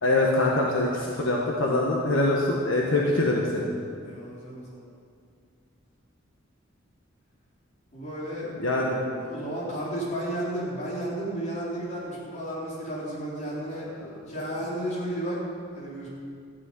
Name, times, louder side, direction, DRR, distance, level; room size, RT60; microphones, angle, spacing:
voice 1, 0.0-3.7 8.6-9.1 14.0-14.1, left 2 dB, 75° left, -2 dB, 1.4 m, -24 dB
voice 2, 4.0-4.9 7.9-8.5 9.0-13.8 14.3-15.4 15.8-16.1, right 1 dB, 35° left, -7 dB, 4.1 m, -33 dB
13.0 x 6.3 x 9.5 m, 2.3 s
head